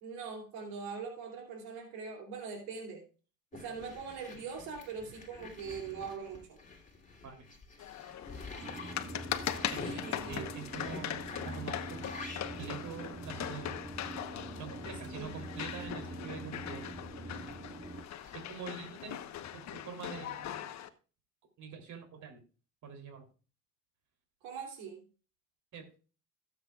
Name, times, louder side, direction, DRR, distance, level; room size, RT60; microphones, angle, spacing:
voice 1, 0.0-3.0 3.5-6.6 9.8-10.5 15.1-15.3 24.4-25.0, right 5 dB, 85° right, 2 dB, 3.0 m, -42 dB
sound 1, 3.5-16.4 16.9-19.3, left 4 dB, 20° left, 3.0 m, -49 dB
sound 2, 7.8-20.9, left 10 dB, 50° left, 1.1 m, -41 dB
sound 3, 8.6-18.0, right 2 dB, 20° right, 1.3 m, -45 dB
voice 2, 9.5-10.0 10.3-12.1 12.6-13.8 14.6-16.8 18.3-19.2 19.5-20.4 21.6-22.4 22.8-23.3 25.7-25.8, right 6 dB, 55° right, 4 dB, 3.3 m, -45 dB
16.5 x 8.3 x 2.4 m, 0.35 s
cardioid pair, 105°, 36 cm